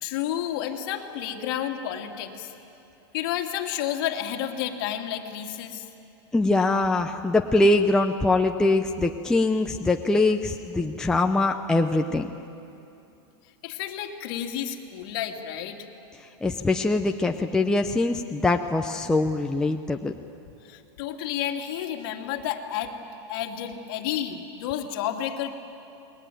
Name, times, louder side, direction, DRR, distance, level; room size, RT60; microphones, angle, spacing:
voice 1, 0.0-2.5 3.1-5.9 13.6-15.8 20.6-22.9 23.3-25.5, left 10 dB, 50° left, 2 dB, 2.6 m, -31 dB
voice 2, 6.3-12.3 16.4-20.1, left 2 dB, 5° left, 3 dB, 0.6 m, -23 dB
29.5 x 21.5 x 9.3 m, 2.8 s
supercardioid pair, 160°, 14 cm